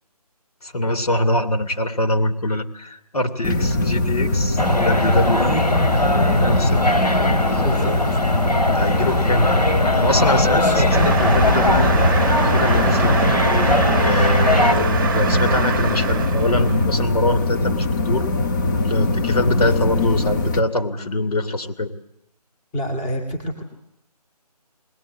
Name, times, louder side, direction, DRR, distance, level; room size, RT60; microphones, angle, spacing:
voice 1, 0.6-5.7 6.1-7.2 7.5-7.6 8.6-9.6 10.0-13.3 14.0-18.2 18.7-21.9, left 1 dB, 65° left, 6 dB, 3.0 m, -23 dB
sound 1, 3.4-20.6, left 2 dB, 30° left, 1.5 m, -21 dB
sound 2, 4.6-14.7, left 1 dB, 85° left, 5.9 m, -21 dB
voice 2, 7.6-8.3 10.5-10.9 22.7-23.6, equal, 10° left, 3 dB, 2.3 m, -28 dB
sound 3, 10.9-16.9, right 5 dB, 30° right, 1.0 m, -24 dB
21.0 x 20.5 x 8.6 m, 0.78 s
figure-of-eight pair, 160°, 21 cm